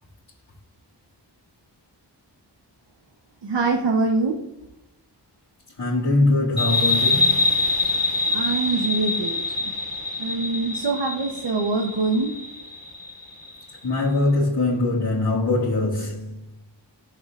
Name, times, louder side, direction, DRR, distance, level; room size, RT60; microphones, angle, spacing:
voice 1, 3.4-4.3 8.3-9.7 10.2-12.3, right 3 dB, 70° right, 1.0 m, -24 dB
voice 2, 5.8-7.6 13.8-16.3, left 2 dB, 65° left, 2.3 m, -22 dB
sound 1, 6.6-13.8, left 2 dB, 25° left, 2.8 m, -25 dB
11.0 x 7.1 x 2.5 m
wide cardioid pair, 65°, 43 cm